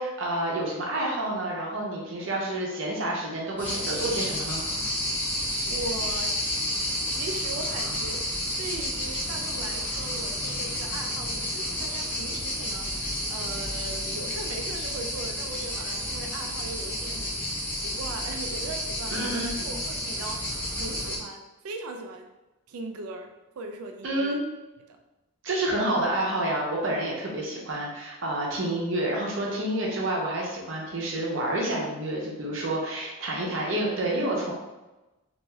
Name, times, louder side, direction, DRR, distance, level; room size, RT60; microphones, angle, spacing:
voice 1, 0.0-4.7 19.1-19.6 24.0-24.4 25.4-34.5, right 1 dB, 60° right, -2 dB, 0.7 m, -29 dB
sound 1, 3.6-21.2, left 1 dB, 10° left, 0.5 m, -31 dB
voice 2, 5.2-6.3 7.1-19.1 19.6-20.5 20.8-22.3 22.7-24.4 24.9-25.0 33.3-33.6, right 2 dB, 90° right, 4 dB, 0.4 m, -39 dB
2.5 x 2.3 x 3.1 m, 1.0 s
head